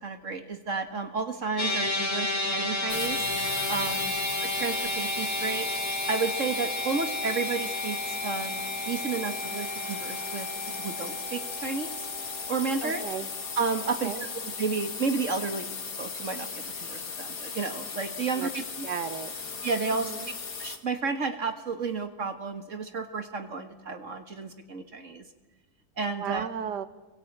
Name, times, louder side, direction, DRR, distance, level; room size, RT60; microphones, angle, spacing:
voice 1, 0.0-3.3 3.7-4.1 4.4-5.7 6.1-10.5 10.8-12.1 12.5-13.1 13.6-14.3 14.6-15.7 16.0-18.9 19.6-20.1 20.6-25.3 26.0-26.5, right 4 dB, 50° right, 7 dB, 1.9 m, -32 dB
sound 1, 1.6-14.0, left 1 dB, 50° left, 3.3 m, -33 dB
sound 2, 2.9-20.8, left 5 dB, 75° left, 2.6 m, -37 dB
voice 2, 12.8-13.3 14.0-14.3 18.4-18.5 18.8-19.3 19.9-20.3 26.2-26.9, right 8 dB, 85° right, 12 dB, 1.8 m, -35 dB
27.0 x 23.0 x 8.9 m, 1.2 s
omnidirectional pair, 1.7 m